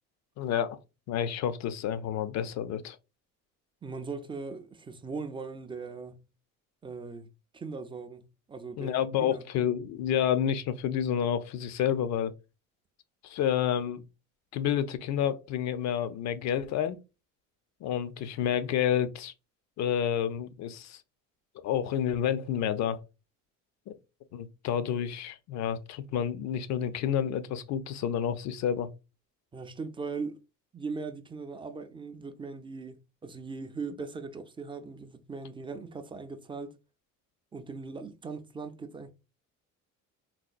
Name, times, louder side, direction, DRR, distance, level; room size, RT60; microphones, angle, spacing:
voice 1, 0.4-0.8 1.1-3.0 8.8-12.3 13.2-14.0 14.5-17.0 17.8-19.3 19.8-21.0 21.6-23.0 23.9-24.0 24.3-28.9, left 9 dB, 60° left, 0.5 m, -29 dB
voice 2, 3.8-6.2 6.8-7.3 7.5-9.5 29.5-30.4 30.7-36.7 37.5-39.1, right 4 dB, 15° right, 0.3 m, -39 dB
4.1 x 2.2 x 2.4 m
cardioid pair, 110°, 32 cm